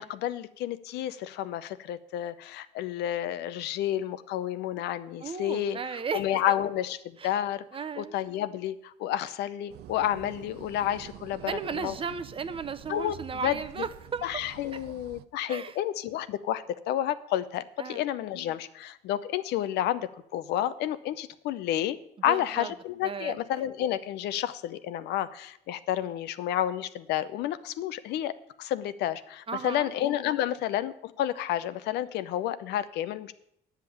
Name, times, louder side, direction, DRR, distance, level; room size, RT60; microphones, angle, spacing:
voice 1, 0.0-5.8 6.1-7.6 8.0-11.9 12.9-13.2 13.4-13.6 14.2-22.0 22.2-33.3, left 12 dB, 80° left, 13 dB, 0.7 m, -30 dB
voice 2, 5.2-6.6 7.2-7.3 7.7-8.1 11.5-14.3 14.7-14.8 15.5-15.8 17.8-18.0 22.3-22.7 23.0-23.4 29.5-29.9, right 6 dB, 30° right, 12 dB, 0.7 m, -35 dB
sound 1, 9.7-15.2, right 13 dB, 75° right, 0.5 m, -47 dB
9.7 x 5.8 x 8.4 m, 0.72 s
cardioid pair, 110°, 17 cm